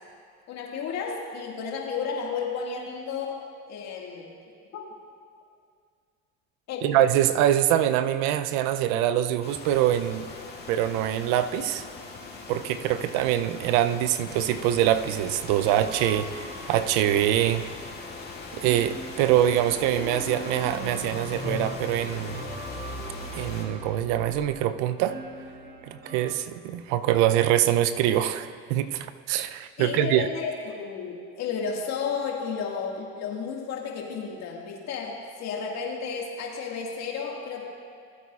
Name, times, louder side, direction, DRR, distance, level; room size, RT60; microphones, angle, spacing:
voice 1, 0.5-4.3 4.7-4.8 6.7-7.0 29.8-37.6, left 5 dB, 55° left, -1 dB, 1.9 m, -32 dB
voice 2, 6.8-10.3 10.7-11.9 12.5-17.6 18.5-22.5 23.3-25.2 25.8-30.3, right 12 dB, 70° right, 12 dB, 0.6 m, -24 dB
sound 1, 9.4-23.6, left 4 dB, 30° left, 2.3 m, -41 dB
sound 2, 15.5-26.3, right 2 dB, 30° right, 1.4 m, -45 dB
sound 3, 19.4-24.5, left 1 dB, 15° left, 2.5 m, -38 dB
18.0 x 8.3 x 2.4 m, 2.2 s
supercardioid pair, 90°, 32 cm